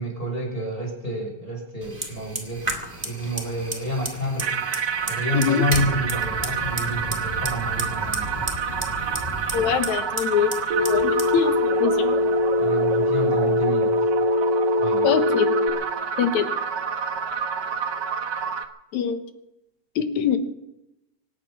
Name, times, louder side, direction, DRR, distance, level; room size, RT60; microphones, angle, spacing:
voice 1, 0.0-2.6 3.0-4.5 5.1-8.5 12.6-13.9 14.8-15.1, equal, 15° left, -1 dB, 6.3 m, -28 dB
Fire, 1.8-13.6, right 1 dB, 15° right, 1.6 m, -34 dB
sound 1, 4.4-18.6, right 7 dB, 75° right, 0.9 m, -29 dB
voice 2, 5.3-5.7 9.5-10.5 10.8-12.2 15.0-15.5 16.2-16.5 18.9-19.2 20.0-20.4, left 8 dB, 65° left, 9 dB, 2.4 m, -23 dB
Telephone, 10.7-15.7, left 1 dB, 50° right, 2.7 m, -22 dB
25.5 x 9.5 x 5.9 m, 0.89 s
omnidirectional pair, 3.9 m